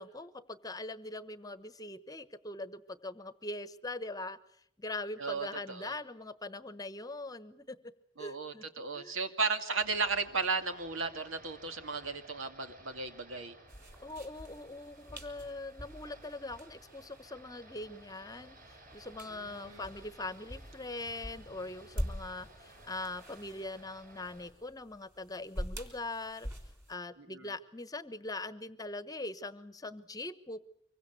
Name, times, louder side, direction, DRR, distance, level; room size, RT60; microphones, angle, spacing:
voice 1, 0.0-4.4 4.8-7.9 8.2-8.6 8.9-9.1 14.0-26.5 26.9-30.6, left 2 dB, 20° left, 14 dB, 1.1 m, -42 dB
voice 2, 5.2-5.9 8.2-13.5 19.3-19.8 27.3-27.5, right 4 dB, 85° right, 8 dB, 2.4 m, -35 dB
sound 1, 9.8-24.5, right 1 dB, 45° right, 6.7 m, -57 dB
sound 2, 13.7-26.9, equal, 15° right, 3.6 m, -45 dB
25.0 x 22.5 x 8.1 m, 0.68 s
head